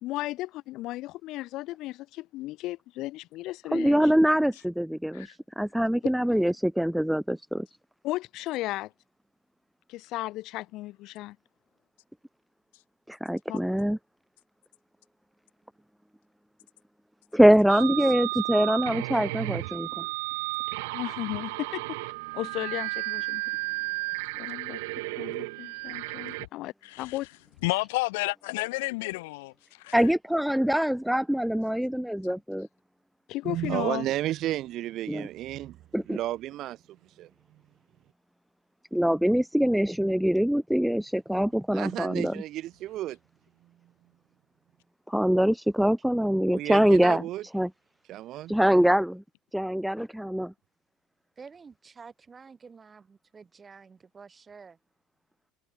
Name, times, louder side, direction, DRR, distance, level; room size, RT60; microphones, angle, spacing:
voice 1, 0.0-4.1 8.0-8.9 9.9-11.4 13.5-13.6 20.9-21.8 22.3-23.4 24.4-24.8 25.2-27.3 33.3-34.1, left 17 dB, 50° left, 1.1 m, -35 dB
voice 2, 3.7-5.3 5.6-7.7 13.1-14.0 17.3-20.1 29.9-32.7 35.1-35.3 35.9-36.2 38.9-42.3 45.1-47.2 47.5-47.7 48.5-49.2 49.5-50.5, equal, ahead, 0.3 m, -24 dB
voice 3, 17.6-19.4 51.4-54.8, right 5 dB, 20° right, 8.0 m, -51 dB
sound 1, 17.7-26.5, right 24 dB, 80° right, 1.4 m, -33 dB
voice 4, 27.6-29.5 29.8-29.9, left 23 dB, 85° left, 0.7 m, -30 dB
voice 5, 33.4-35.8 36.1-36.8 37.1-37.3 41.7-43.2 46.5-47.4 48.1-48.5, right 14 dB, 45° right, 0.8 m, -32 dB
supercardioid pair, 140°, 0 cm